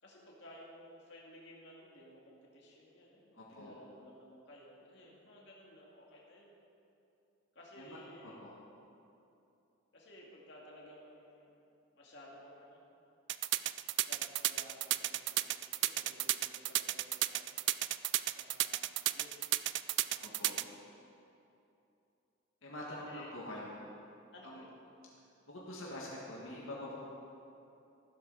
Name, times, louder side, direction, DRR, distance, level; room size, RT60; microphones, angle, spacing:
voice 1, 0.0-6.5 7.5-8.4 9.9-11.6 11.9-12.8 14.0-17.5 18.3-19.4 20.0-20.9 23.0-23.3 24.3-24.7, left 1 dB, 55° left, -4 dB, 2.4 m, -56 dB
voice 2, 3.3-3.7 7.8-8.5 20.2-20.5 22.6-23.7 24.4-24.6 25.5-27.0, left 1 dB, 75° left, -5 dB, 1.8 m, -45 dB
sound 1, 13.3-20.6, right 15 dB, 55° right, 0.3 m, -32 dB
15.0 x 12.5 x 4.1 m, 2.8 s
head